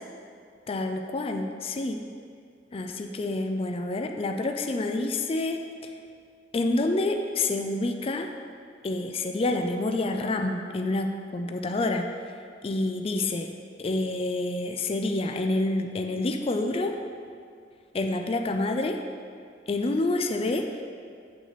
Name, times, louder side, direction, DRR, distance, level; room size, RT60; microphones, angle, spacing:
voice 1, 0.7-2.1 2.7-5.9 6.5-8.3 8.8-12.1 12.6-13.5 13.8-17.0 17.9-19.0 19.7-20.7, left 2 dB, 30° left, 5 dB, 0.4 m, -28 dB
8.2 x 6.1 x 4.1 m, 2.3 s
head